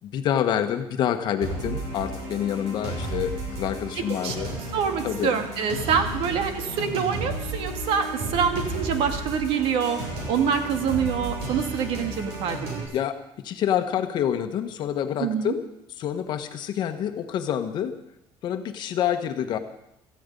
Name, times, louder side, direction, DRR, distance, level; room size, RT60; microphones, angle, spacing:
voice 1, 0.0-4.5 5.0-5.3 12.9-15.6 16.0-17.9 18.4-19.6, left 9 dB, 45° left, 7 dB, 1.2 m, -27 dB
sound 1, 1.4-12.8, right 2 dB, 80° right, 6.9 m, -33 dB
voice 2, 4.0-4.3 4.7-10.0 10.3-12.9 15.2-15.6, right 7 dB, 60° right, 6 dB, 1.9 m, -26 dB
17.5 x 14.5 x 5.3 m, 0.80 s
cardioid pair, 175°, 10 cm